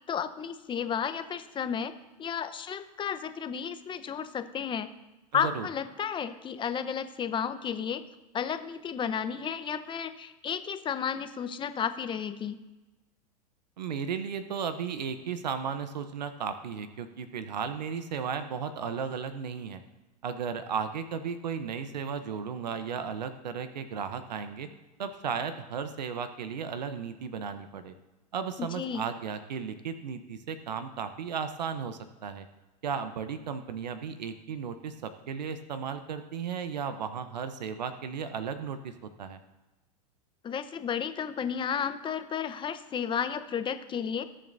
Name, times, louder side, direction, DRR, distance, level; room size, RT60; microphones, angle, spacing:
voice 1, 0.1-1.9 2.2-4.9 5.3-8.0 8.3-12.6 28.6-29.1 40.4-44.2, left 7 dB, 25° left, 10 dB, 0.9 m, -32 dB
voice 2, 5.3-5.7 13.8-19.8 20.2-24.7 25.0-27.9 28.3-32.5 32.8-39.4, right 6 dB, 85° right, 10 dB, 0.9 m, -35 dB
20.0 x 7.6 x 2.7 m, 1.1 s
hypercardioid pair, 110°, 21 cm